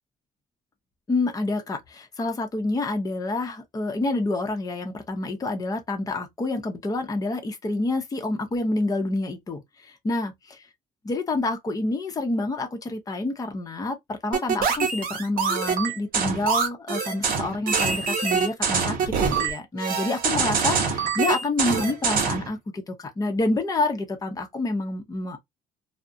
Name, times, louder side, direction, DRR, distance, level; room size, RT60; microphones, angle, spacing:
voice 1, 1.1-9.6 10.0-10.3 11.0-25.4, left 2 dB, 20° left, 0.6 m, -28 dB
sound 1, 14.3-22.5, right 5 dB, 55° right, 0.9 m, -25 dB
2.3 x 2.0 x 2.5 m
cardioid pair, 110°, 17 cm